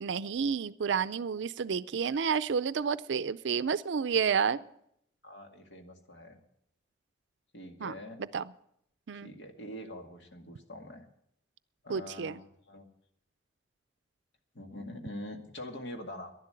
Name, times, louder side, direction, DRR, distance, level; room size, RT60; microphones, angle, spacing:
voice 1, 0.0-4.6 7.8-7.9 8.2-8.4 9.1-9.3 11.9-12.4, right 6 dB, 80° right, 15 dB, 0.4 m, -30 dB
voice 2, 5.2-6.4 7.5-8.2 9.1-11.0 11.8-12.9 14.5-16.3, left 1 dB, 70° left, 3 dB, 2.1 m, -44 dB
11.5 x 11.5 x 7.7 m, 0.73 s
head